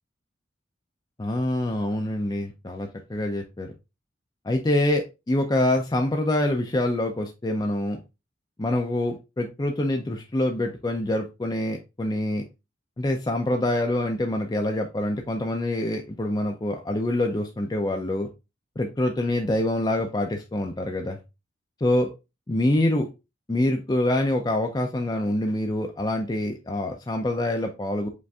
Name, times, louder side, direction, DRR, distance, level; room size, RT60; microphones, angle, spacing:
voice 1, 1.2-3.7 4.4-8.0 8.6-12.4 13.0-18.3 18.8-21.2 21.8-22.1 22.5-23.1 23.5-28.1, left 1 dB, 20° left, 3 dB, 0.4 m, -25 dB
5.1 x 2.5 x 3.3 m, 0.26 s
head